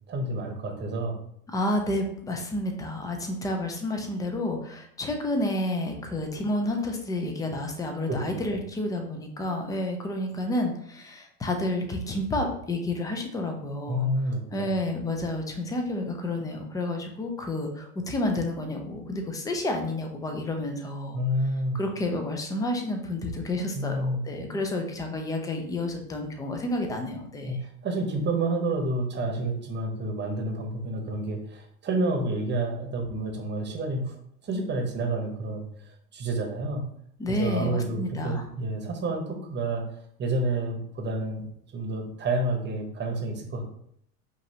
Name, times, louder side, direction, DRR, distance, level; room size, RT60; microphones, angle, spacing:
voice 1, 0.1-1.2 8.1-8.2 13.9-14.7 21.1-21.8 23.7-24.5 27.4-34.1 34.4-36.8 37.3-39.8 40.2-43.6, right 2 dB, 25° right, 3 dB, 0.9 m, -29 dB
voice 2, 1.5-14.1 14.5-21.2 21.7-27.7 37.2-38.5, left 1 dB, 10° left, 4 dB, 0.3 m, -30 dB
5.2 x 2.7 x 2.8 m, 0.68 s
hypercardioid pair, 105°, 45 cm